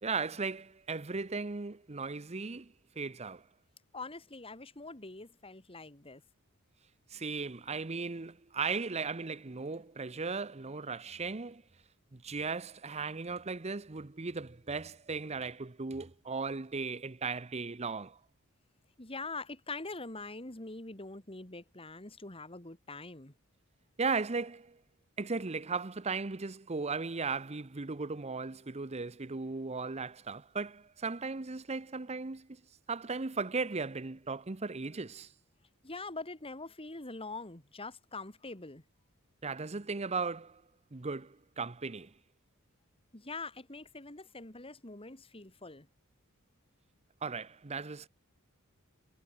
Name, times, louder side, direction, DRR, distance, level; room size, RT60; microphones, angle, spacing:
voice 1, 0.0-3.4 7.1-11.6 12.1-18.2 24.0-24.8 25.2-32.6 32.9-35.3 39.4-40.6 40.9-42.1 47.2-48.1, right 4 dB, 30° right, 0.8 m, -37 dB
voice 2, 3.9-6.2 19.0-23.3 35.8-38.8 43.1-45.9, left 3 dB, 25° left, 2.8 m, -44 dB
head